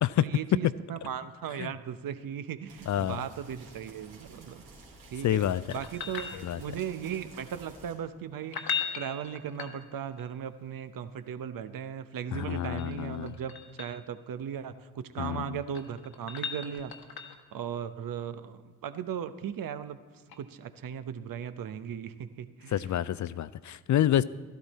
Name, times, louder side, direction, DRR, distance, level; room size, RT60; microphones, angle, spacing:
voice 1, 0.2-4.6 5.1-5.4 5.7-16.9 17.3-20.0 20.4-22.9, right 8 dB, 60° right, 11 dB, 0.9 m, -37 dB
sound 1, 2.7-7.9, right 2 dB, 90° right, 2.6 m, -52 dB
voice 2, 2.9-3.2 5.2-5.6 6.4-6.6 12.3-13.3 15.2-15.6 22.7-24.2, left 11 dB, 50° left, 17 dB, 0.5 m, -28 dB
sound 2, 5.7-6.9 8.4-10.2 12.4-14.0 15.4-17.5 20.3-20.4, left 7 dB, 65° left, 1.4 m, -38 dB
13.0 x 12.0 x 4.2 m, 1.4 s
hypercardioid pair, 45°, 39 cm